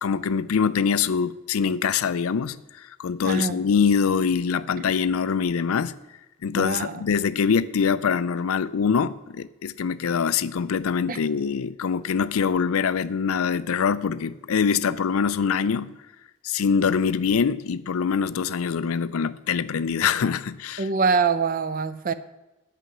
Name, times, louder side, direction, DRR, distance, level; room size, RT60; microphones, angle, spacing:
voice 1, 0.0-5.9 6.4-15.9 16.4-20.9, left 6 dB, 80° left, 0.4 m, -24 dB
voice 2, 3.2-3.6 4.8-4.9 6.5-7.0 11.1-11.2 20.8-22.1, right 5 dB, 40° right, 0.5 m, -24 dB
9.6 x 5.7 x 7.2 m
head